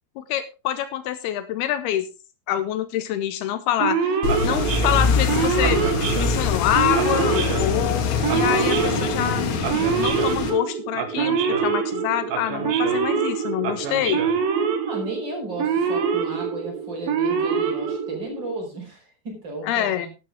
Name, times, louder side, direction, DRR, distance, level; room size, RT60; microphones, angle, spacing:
voice 1, 0.2-2.1 2.5-4.2 4.4-5.8 6.2-9.5 10.0-14.2 19.6-20.1, left 11 dB, 85° left, 11 dB, 2.2 m, -26 dB
Male speech man speaking / Siren, 3.8-18.5, right 6 dB, 60° right, 2.6 m, -25 dB
sound 1, 4.2-10.5, left 5 dB, 70° left, 3.8 m, -24 dB
voice 2, 14.9-20.1, right 1 dB, 25° right, 1 dB, 5.1 m, -34 dB
12.0 x 11.0 x 3.6 m, 0.28 s
omnidirectional pair, 5.7 m